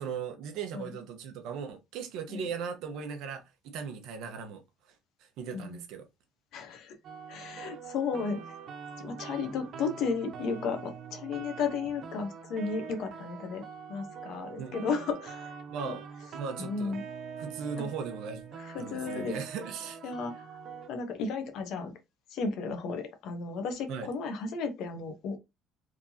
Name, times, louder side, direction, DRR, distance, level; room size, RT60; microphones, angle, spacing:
voice 1, 0.0-4.6 5.2-6.0 14.6-14.7 15.7-16.0 16.3-16.9 17.4-18.4 18.8-20.0 23.9-24.1, right 6 dB, 65° right, 1.1 m, -38 dB
voice 2, 6.5-7.0 7.3-8.5 9.0-13.6 13.9-15.5 15.8-15.9 16.6-17.0 17.8-17.9 18.6-19.4 20.0-20.5 20.9-21.9 22.3-25.4, left 5 dB, 55° left, 1.0 m, -34 dB
sound 1, 7.0-20.9, right 6 dB, 40° right, 0.7 m, -44 dB
4.6 x 3.7 x 2.8 m
cardioid pair, 175°, 0 cm